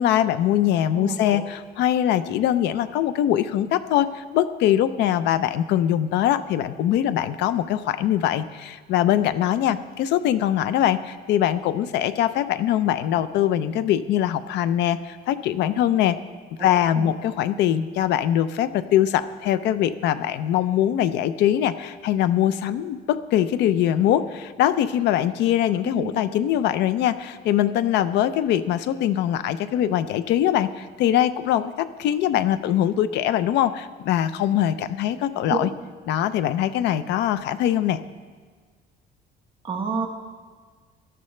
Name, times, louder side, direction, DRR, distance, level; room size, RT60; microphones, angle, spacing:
voice 1, 0.0-16.2 16.6-35.7 36.1-38.0, left 11 dB, 70° left, 14 dB, 0.6 m, -22 dB
voice 2, 0.9-1.5 16.6-17.1 25.8-26.1 35.5-35.8 39.6-40.1, right 4 dB, 30° right, 2 dB, 1.3 m, -30 dB
18.0 x 11.5 x 3.2 m, 1.5 s
cardioid pair, 160°, 18 cm